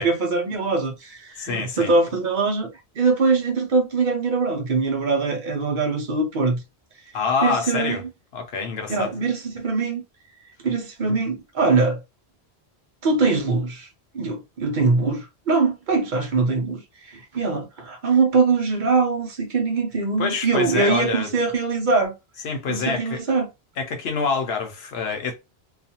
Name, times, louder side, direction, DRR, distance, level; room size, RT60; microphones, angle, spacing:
voice 1, 0.0-6.6 7.4-8.0 8.9-10.0 10.6-12.0 13.0-13.9 14.1-22.1 22.7-23.5, right 4 dB, 55° right, 0.7 m, -22 dB
voice 2, 1.4-1.9 7.1-8.0 8.3-9.1 20.2-21.3 22.4-23.2 23.8-25.4, left 5 dB, 75° left, 0.9 m, -26 dB
2.4 x 2.3 x 2.7 m
omnidirectional pair, 1.1 m